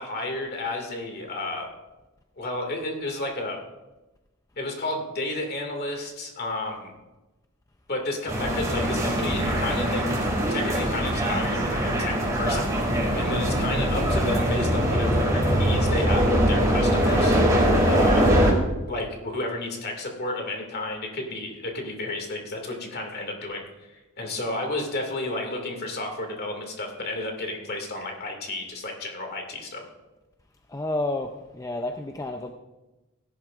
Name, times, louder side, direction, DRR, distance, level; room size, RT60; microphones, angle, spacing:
voice 1, 0.0-1.7 2.4-3.6 4.6-6.9 7.9-10.1 10.5-17.6 17.9-18.3 18.9-23.6 23.9-29.8, left 2 dB, 45° left, 3 dB, 2.2 m, -32 dB
sound 1, 8.3-18.5, equal, 15° right, 2.4 m, -22 dB
voice 2, 30.7-32.5, left 2 dB, 15° left, 4 dB, 0.5 m, -30 dB
17.0 x 11.0 x 2.5 m, 1.1 s
head